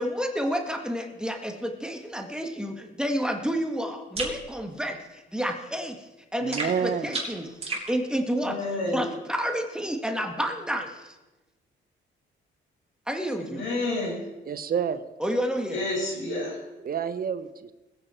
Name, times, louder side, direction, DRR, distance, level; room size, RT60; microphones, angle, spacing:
voice 1, 0.0-8.6 8.9-11.2 13.1-13.6 15.2-15.8, equal, 5° right, 3 dB, 1.7 m, -30 dB
sound 1, 4.2-4.4 6.5-7.9, right 2 dB, 30° right, 5.0 m, -32 dB
voice 2, 6.4-7.1 14.5-15.0 16.8-17.7, right 7 dB, 50° right, 12 dB, 0.9 m, -28 dB
voice 3, 8.4-9.1 13.3-14.2 15.7-16.6, left 2 dB, 75° left, -3 dB, 6.2 m, -30 dB
20.5 x 8.9 x 4.4 m, 1.1 s
cardioid pair, 90°, 20 cm